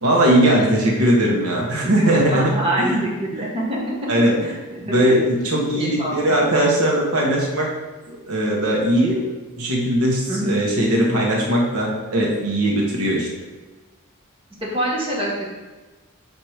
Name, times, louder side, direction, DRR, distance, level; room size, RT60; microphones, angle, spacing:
voice 1, 0.0-2.5 2.8-3.1 3.3-3.4 4.1-4.4 4.8-7.7 8.3-9.2 9.6-13.3, right 1 dB, 85° right, -2 dB, 1.3 m, -19 dB
voice 2, 1.8-4.1 4.4-4.5 4.9-5.2 5.7-6.3 10.3-10.6 14.6-15.5, right 1 dB, 25° right, -4 dB, 1.4 m, -25 dB
4.8 x 4.6 x 4.9 m, 1.2 s
head